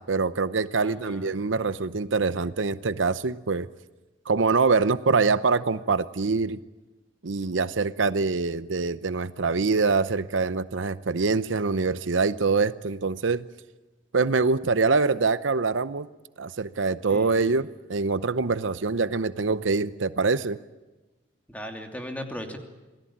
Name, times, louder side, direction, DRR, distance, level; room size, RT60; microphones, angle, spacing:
voice 1, 0.0-3.7 4.3-6.6 7.2-13.4 14.1-16.1 16.4-20.6, right 4 dB, 80° right, 14 dB, 0.8 m, -24 dB
voice 2, 0.8-1.4 17.1-17.7 21.5-22.6, equal, 10° left, 3 dB, 2.9 m, -38 dB
27.0 x 18.5 x 8.7 m, 1.1 s
head